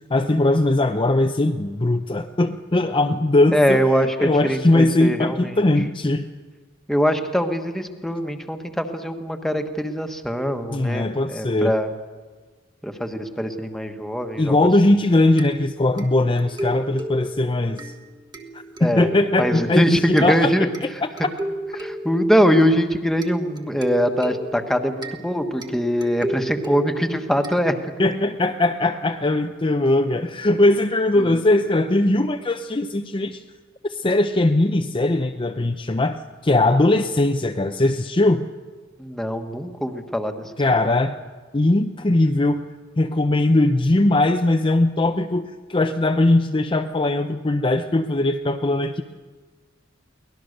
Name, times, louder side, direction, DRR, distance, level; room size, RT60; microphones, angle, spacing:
voice 1, 0.1-6.3 10.7-11.7 14.4-17.9 18.8-21.1 28.0-33.4 33.9-38.5 40.6-41.2 41.5-42.7 43.0-49.0, left 2 dB, 25° left, 5 dB, 0.6 m, -20 dB
voice 2, 3.5-5.6 6.9-11.9 12.8-14.6 18.8-19.1 19.4-20.7 21.8-27.7 31.2-31.4 39.0-40.3, equal, ahead, 6 dB, 1.3 m, -22 dB
sound 1, 15.4-28.1, right 1 dB, 20° right, 1.4 m, -34 dB
23.5 x 18.5 x 6.6 m, 1.4 s
head